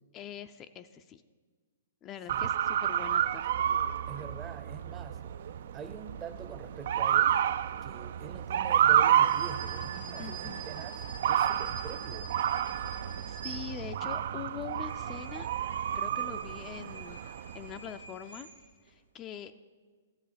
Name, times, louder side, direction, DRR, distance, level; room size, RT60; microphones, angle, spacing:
voice 1, 0.1-1.2 2.0-3.5 10.2-10.6 13.2-15.5 15.9-17.2 17.5-18.5 18.8-19.5, left 9 dB, 25° left, 8 dB, 0.4 m, -43 dB
Motor vehicle (road) / Siren, 2.3-17.9, right 10 dB, 60° right, 0.3 m, -30 dB
voice 2, 4.1-12.3, right 6 dB, 20° right, 11 dB, 0.6 m, -45 dB
sound 1, 8.9-14.2 14.6-18.9, right 5 dB, 85° right, 1.7 m, -46 dB
12.5 x 7.5 x 5.1 m, 1.5 s
hypercardioid pair, 135°, 0 cm